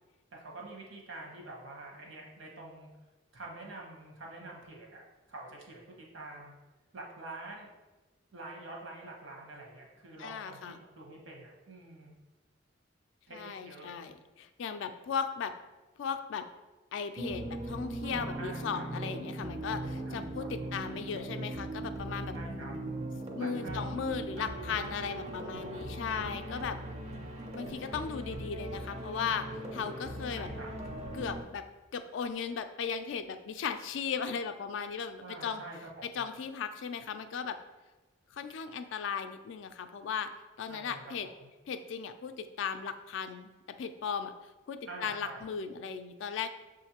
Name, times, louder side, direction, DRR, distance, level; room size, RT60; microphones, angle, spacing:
voice 1, 0.3-2.9 3.3-6.5 6.9-7.7 8.3-12.2 13.3-13.9 18.4-18.8 19.8-20.9 22.3-22.7 23.4-24.0 24.5-24.9 30.3-30.7 35.2-36.3 40.7-41.3 44.9-45.4, right 2 dB, 80° right, -1 dB, 1.0 m, -46 dB
voice 2, 10.2-10.8 13.3-15.6 16.0-16.5 16.9-22.4 23.3-26.8 27.5-29.5 29.7-30.5 31.1-31.7 31.9-35.6 36.0-37.6 38.3-40.3 40.6-41.3 41.7-44.3 44.7-46.5, left 6 dB, 65° left, 9 dB, 0.3 m, -37 dB
sound 1, 17.2-31.4, right 1 dB, 35° right, 0.4 m, -39 dB
6.4 x 2.5 x 2.8 m, 1.2 s
head